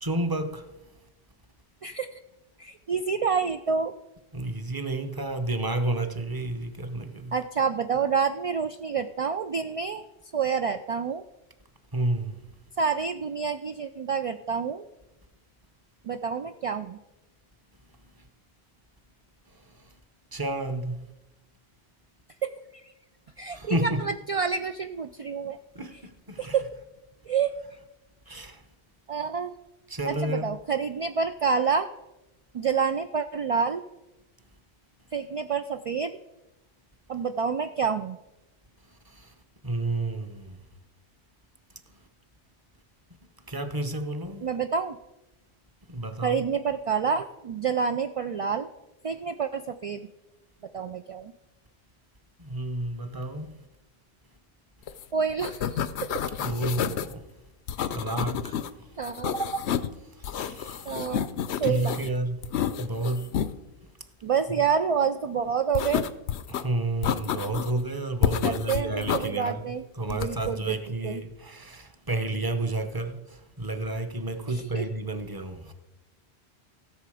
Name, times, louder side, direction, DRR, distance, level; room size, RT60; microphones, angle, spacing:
voice 1, 0.0-0.7 4.3-7.3 11.9-12.4 19.5-19.9 20.3-21.0 23.5-24.0 25.7-26.6 28.3-28.6 29.9-30.5 39.1-39.3 39.6-40.6 43.5-44.5 45.9-46.4 52.4-53.6 56.4-57.2 57.9-58.9 59.3-59.7 59.9-61.0 61.6-62.4 62.8-63.3 66.5-75.7, right 2 dB, 20° right, 0.8 m, -31 dB
voice 2, 1.8-2.2 2.6-3.9 7.3-10.0 10.3-11.2 12.8-14.8 16.0-17.0 22.4-22.9 23.4-25.6 26.4-26.7 27.3-27.5 29.1-29.5 30.1-31.9 32.5-33.8 35.1-36.2 37.1-38.2 44.4-45.0 46.2-48.7 49.0-50.0 50.7-51.3 55.1-56.1 59.0-59.4 60.9-61.3 61.6-62.0 64.2-66.0 68.4-69.8 70.1-70.8 71.0-71.2 74.5-74.9, right 6 dB, 65° right, 0.3 m, -28 dB
sound 1, 54.9-55.0 55.3-57.1 57.7-58.7 59.0-59.9 60.2-62.1 62.4-63.5 65.7-66.6 67.0-67.8 68.2-69.3 70.1-70.5, left 9 dB, 85° left, 0.9 m, -30 dB
16.5 x 6.7 x 4.9 m
omnidirectional pair, 1.1 m